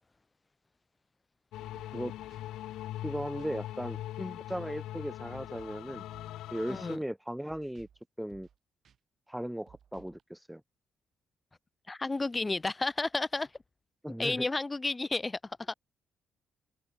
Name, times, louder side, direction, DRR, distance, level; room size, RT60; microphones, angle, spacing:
sound 1, 1.5-7.0, left 14 dB, 85° left, 0.6 m, -41 dB
sound 2, 1.7-2.0 2.3-2.4 3.4-3.7 3.9-4.2 4.5-4.6 5.3-5.8 6.1-6.4 6.7-6.8 7.5-8.0 8.3-8.6 8.8-9.0 9.7-10.2, right 8 dB, 60° right, 6.8 m, -59 dB
voice 1, 3.0-4.0 4.5-6.0 6.5-7.9 8.2-8.5 9.3-10.6 14.0-14.5, equal, 5° right, 0.4 m, -37 dB
voice 2, 6.7-7.0 11.9-13.5 14.2-15.7, left 3 dB, 20° left, 0.9 m, -32 dB
cardioid pair, 90°, 0 cm